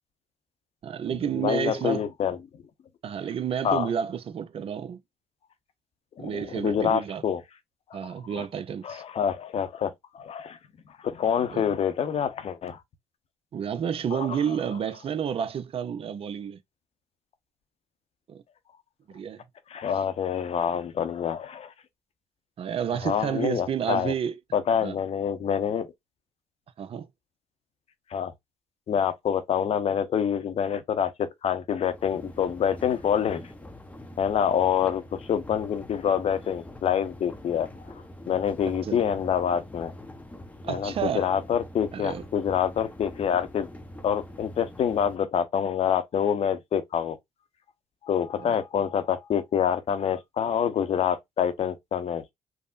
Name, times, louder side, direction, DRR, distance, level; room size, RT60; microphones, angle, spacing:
voice 1, 0.8-2.1 3.0-5.0 6.2-7.2 7.9-9.0 11.5-11.6 13.5-16.6 18.3-18.4 19.1-19.4 22.6-24.4 24.8-24.9 26.8-27.1 38.8-39.0 40.6-41.3 41.9-42.2 48.4-48.6, right 8 dB, 50° right, 0.5 m, -30 dB
voice 2, 1.3-2.4 3.6-3.9 6.2-7.4 8.3-8.4 8.8-10.6 11.0-12.8 14.1-14.4 19.7-21.7 23.0-24.1 24.5-25.9 28.1-28.3 28.9-33.4 34.2-37.7 38.3-39.9 40.7-43.7 44.0-47.2 48.0-52.3, left 8 dB, 55° left, 0.7 m, -26 dB
sound 1, 31.8-45.2, left 1 dB, 10° left, 0.7 m, -44 dB
3.5 x 2.0 x 2.4 m
supercardioid pair, 60°, 12 cm